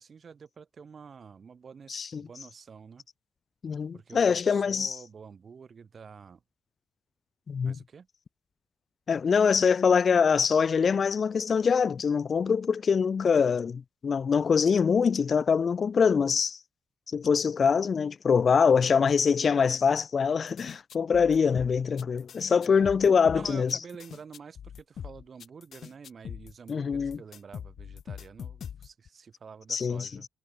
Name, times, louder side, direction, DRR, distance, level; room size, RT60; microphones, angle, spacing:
voice 1, 0.0-3.1 3.9-6.4 7.6-8.1 22.6-23.0 23.3-30.3, right 6 dB, 45° right, 5.9 m, -48 dB
voice 2, 1.9-2.3 3.6-5.0 7.5-7.8 9.1-16.6 17.1-23.8 26.7-27.2 29.7-30.1, left 6 dB, 45° left, 0.8 m, -24 dB
sound 1, 20.5-29.1, left 8 dB, 60° left, 2.6 m, -42 dB
cardioid pair, 95°, 0 cm